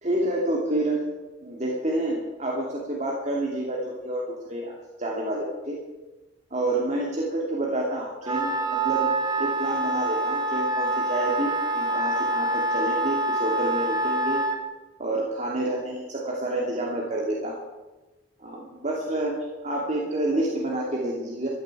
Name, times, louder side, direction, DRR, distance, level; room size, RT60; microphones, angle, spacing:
voice 1, 0.0-1.0 1.4-5.8 6.5-9.1 9.4-14.4 15.0-17.6 18.4-19.3 19.6-21.5, right 1 dB, 40° right, -2 dB, 2.8 m, -28 dB
Wind instrument woodwind instrument, 8.2-14.6, right 2 dB, 25° right, 1.9 m, -26 dB
14.0 x 11.0 x 9.0 m, 1.1 s
head